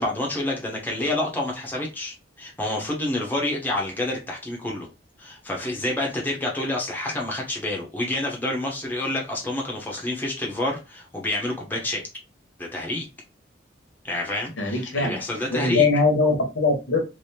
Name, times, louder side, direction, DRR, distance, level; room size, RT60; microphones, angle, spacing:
voice 1, 0.0-4.9 5.2-12.0 12.6-13.1 14.0-15.9, left 1 dB, 10° left, -1 dB, 0.8 m, -28 dB
voice 2, 14.6-15.2 15.5-17.0, left 3 dB, 75° left, 3 dB, 1.0 m, -21 dB
3.3 x 2.6 x 2.7 m, 0.28 s
head